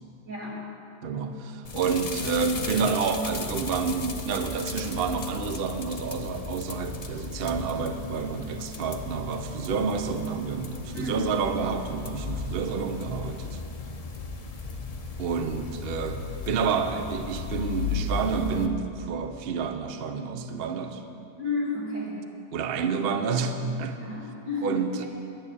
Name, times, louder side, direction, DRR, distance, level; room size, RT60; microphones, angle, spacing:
voice 1, 0.2-0.6 10.9-11.3 21.4-22.2 24.0-25.1, left 3 dB, 90° right, -6 dB, 3.4 m, -32 dB
voice 2, 1.0-13.6 15.2-21.0 22.5-24.0 24.6-25.0, right 5 dB, 55° right, 7 dB, 0.6 m, -29 dB
sound 1, 1.6-18.7, left 4 dB, 75° left, 0.3 m, -36 dB
11.0 x 6.8 x 8.5 m, 2.6 s
omnidirectional pair, 1.8 m